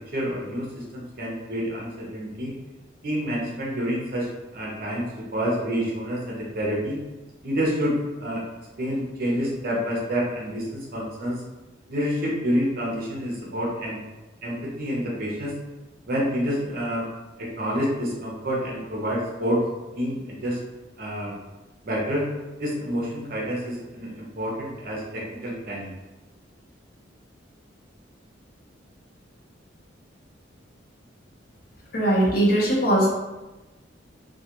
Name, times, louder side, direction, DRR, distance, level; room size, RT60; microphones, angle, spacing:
voice 1, 0.1-2.5 3.0-5.1 5.3-7.0 7.4-8.4 8.8-11.4 11.9-14.0 14.4-15.5 16.1-17.1 17.4-19.6 20.0-20.6 21.0-21.4 21.8-22.2 22.6-25.9, equal, 50° right, -4 dB, 0.6 m, -28 dB
voice 2, 31.9-33.1, right 1 dB, 50° left, -4 dB, 0.7 m, -20 dB
2.3 x 2.2 x 2.9 m, 1.1 s
head